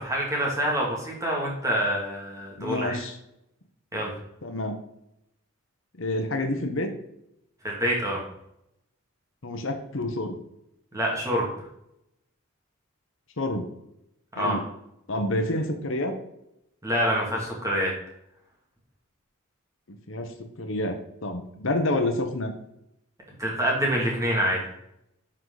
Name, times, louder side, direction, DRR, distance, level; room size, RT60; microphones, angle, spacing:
voice 1, 0.0-3.0 3.9-4.1 7.6-8.2 10.9-11.5 14.4-14.6 16.8-17.9 23.4-24.6, equal, 15° right, -3 dB, 2.3 m, -26 dB
voice 2, 2.6-3.2 4.4-4.8 6.0-6.9 9.4-10.4 13.4-13.7 14.4-14.6 15.1-16.1 20.1-21.0 21.2-22.5, left 1 dB, 65° left, 5 dB, 1.0 m, -28 dB
10.5 x 4.9 x 4.0 m, 0.80 s
head